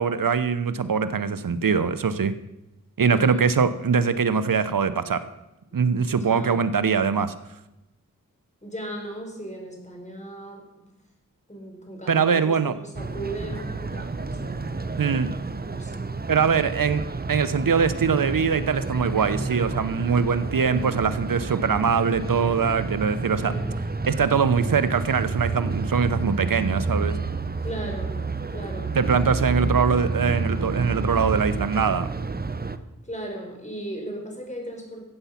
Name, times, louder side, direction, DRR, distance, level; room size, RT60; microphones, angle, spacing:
voice 1, 0.0-2.3 3.0-5.2 5.7-7.3 12.1-12.7 15.0-15.3 16.3-17.0 17.3-23.5 24.1-27.2 28.9-32.1, right 6 dB, 65° right, 13 dB, 0.9 m, -22 dB
voice 2, 3.0-3.4 5.7-6.6 8.6-11.0 11.5-14.9 15.6-16.0 20.6-21.0 23.4-23.8 27.5-29.0 33.0-35.0, right 1 dB, 20° left, 1 dB, 4.6 m, -37 dB
sound 1, 12.9-32.8, right 3 dB, 25° right, 0.8 m, -30 dB
14.5 x 8.2 x 5.8 m, 0.95 s
cardioid pair, 50°, 35 cm